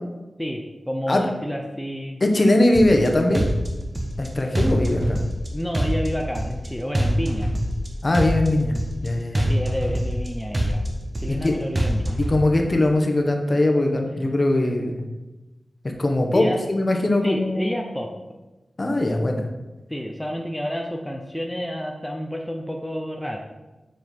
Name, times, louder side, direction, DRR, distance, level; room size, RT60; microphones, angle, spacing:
voice 1, 0.4-2.2 5.5-7.5 9.5-10.8 11.2-12.2 16.3-16.6 17.2-18.1 19.9-23.4, equal, 5° left, 1 dB, 0.8 m, -29 dB
voice 2, 2.2-3.5 4.2-5.2 8.0-8.7 9.0-9.5 11.3-11.6 12.2-15.0 16.0-17.7 18.8-19.4, left 1 dB, 40° left, 3 dB, 1.2 m, -20 dB
sound 1, 2.7-3.1 3.3-4.3 4.5-5.5 5.7-6.7 6.9-7.9 8.1-9.1 9.3-10.3 10.5-11.5 11.7-12.3, right 1 dB, 35° right, 1.4 m, -24 dB
8.3 x 5.0 x 4.5 m, 1.1 s
cardioid pair, 60°, 0 cm